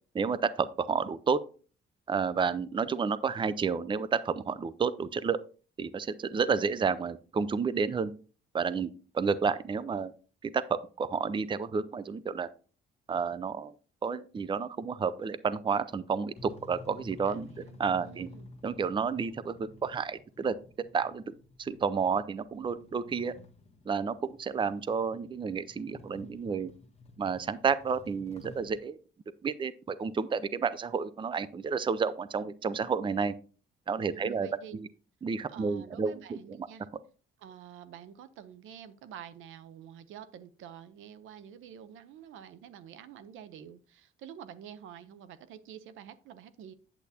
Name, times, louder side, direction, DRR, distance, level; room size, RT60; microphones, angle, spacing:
voice 1, 0.1-1.4 2.1-5.4 5.8-8.1 8.5-10.1 10.4-12.5 13.1-13.7 14.0-18.3 18.6-20.5 20.9-23.3 23.9-26.7 27.2-29.0 29.4-33.3 33.9-34.9 35.2-36.7, right 5 dB, 25° right, 0.5 m, -31 dB
sound 1, 16.3-28.8, left 2 dB, 30° left, 1.2 m, -53 dB
voice 2, 17.3-18.5 34.0-34.8 35.5-36.9 37.4-46.7, right 9 dB, 85° right, 0.7 m, -48 dB
8.4 x 8.0 x 2.8 m
cardioid pair, 90°, 20 cm